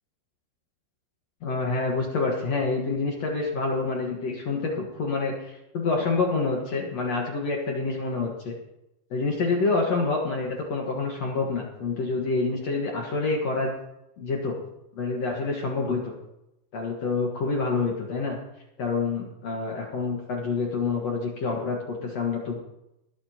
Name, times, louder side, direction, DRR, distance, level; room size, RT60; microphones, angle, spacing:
voice 1, 1.4-8.5 9.1-13.7 14.2-14.6 14.9-16.1 16.7-18.4 18.8-22.6, left 3 dB, 65° left, -1 dB, 1.7 m, -27 dB
21.5 x 9.8 x 2.9 m, 0.87 s
omnidirectional pair, 5.2 m